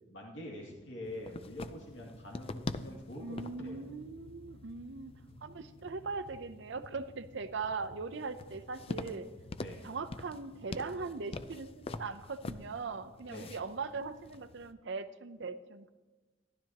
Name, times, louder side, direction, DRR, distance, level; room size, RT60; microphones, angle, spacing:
voice 1, 0.1-3.8 9.6-9.8 13.3-13.5, left 1 dB, 75° left, -2 dB, 2.3 m, -45 dB
sound 1, 1.0-14.7, left 2 dB, 30° left, 0.4 m, -46 dB
sound 2, 2.1-7.0 7.2-12.6, left 1 dB, 50° left, 2.2 m, -58 dB
voice 2, 3.2-5.1 5.4-9.3 9.8-15.9, right 4 dB, 70° right, 12 dB, 0.6 m, -40 dB
15.0 x 11.5 x 2.9 m, 1.2 s
head